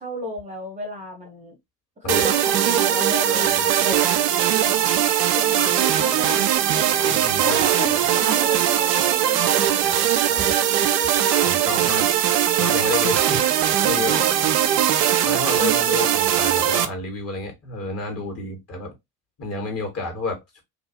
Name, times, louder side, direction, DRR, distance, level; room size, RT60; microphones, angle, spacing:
voice 1, 0.0-1.6 2.0-4.2 4.6-4.8 5.3-10.1 14.1-14.4, equal, 15° right, 0.9 m, -33 dB
sound 1, 2.1-16.9, right 10 dB, 75° right, 0.6 m, -20 dB
voice 2, 7.0-7.6 9.6-9.7 10.3-10.5 11.4-12.1 12.5-14.1 15.2-18.9 19.4-20.6, left 3 dB, 30° left, 1.5 m, -30 dB
2.6 x 2.3 x 2.7 m
hypercardioid pair, 65°, 49 cm